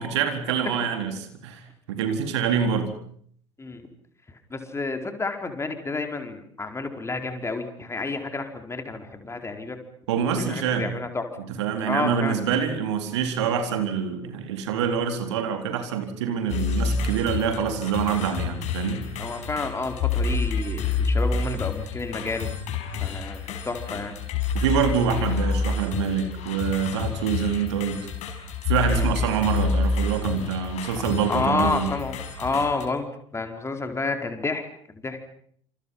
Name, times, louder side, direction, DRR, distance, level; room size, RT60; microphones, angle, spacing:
voice 1, 0.0-2.9 10.1-10.9 11.6-19.1 24.5-28.0 28.7-31.9, right 7 dB, 65° right, 6 dB, 4.0 m, -26 dB
voice 2, 4.5-9.8 10.4-11.3 11.8-12.4 19.2-22.5 23.0-24.1 28.9-29.1 31.3-33.1 33.3-34.6 34.9-35.3, left 3 dB, 15° left, 5 dB, 4.6 m, -30 dB
sound 1, 16.5-32.9, left 4 dB, 50° left, 6.0 m, -28 dB
29.0 x 28.0 x 5.7 m, 0.63 s
figure-of-eight pair, 65°, 16 cm